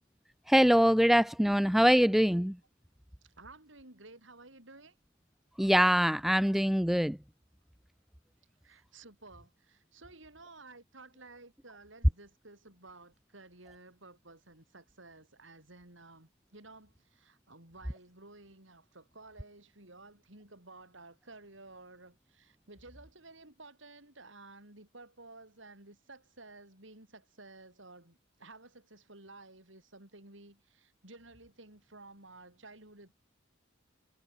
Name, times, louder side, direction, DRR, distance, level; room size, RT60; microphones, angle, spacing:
voice 1, 0.5-2.6 5.6-7.2, equal, ahead, 0.4 m, -24 dB
voice 2, 3.4-4.9 8.6-33.1, right 2 dB, 65° right, 6.4 m, -54 dB
head